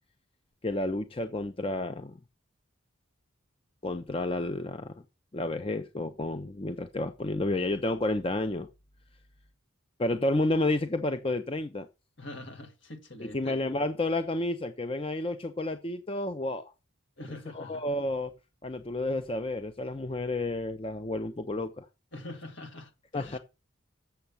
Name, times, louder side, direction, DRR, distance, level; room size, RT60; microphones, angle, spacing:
voice 1, 0.6-2.2 3.8-5.0 5.3-8.7 10.0-11.9 13.2-16.7 17.5-18.3 18.6-21.9 23.1-23.4, left 2 dB, 25° left, 0.5 m, -31 dB
voice 2, 12.2-13.6 17.2-17.9 22.1-23.4, left 1 dB, 60° left, 2.2 m, -44 dB
7.8 x 7.0 x 7.0 m
head